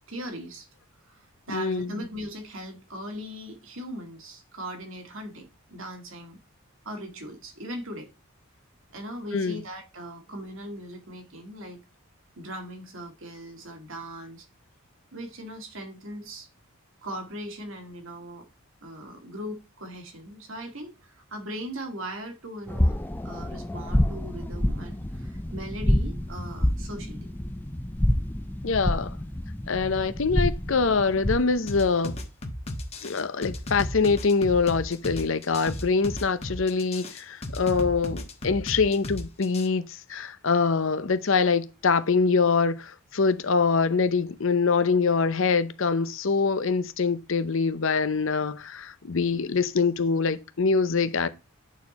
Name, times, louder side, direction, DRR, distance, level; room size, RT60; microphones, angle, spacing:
voice 1, 0.1-0.7 1.0-6.4 6.8-8.1 8.9-11.8 12.4-14.5 15.1-16.5 17.0-18.5 18.8-27.3, equal, 60° right, 2.0 m, -39 dB
voice 2, 1.5-2.0 9.3-9.6 28.6-29.2 29.7-32.2 33.0-51.3, left 4 dB, 60° left, 0.7 m, -24 dB
sound 1, 22.7-31.6, left 1 dB, 10° left, 0.5 m, -27 dB
sound 2, 31.7-39.7, left 1 dB, 30° left, 1.2 m, -35 dB
9.0 x 4.5 x 4.2 m
head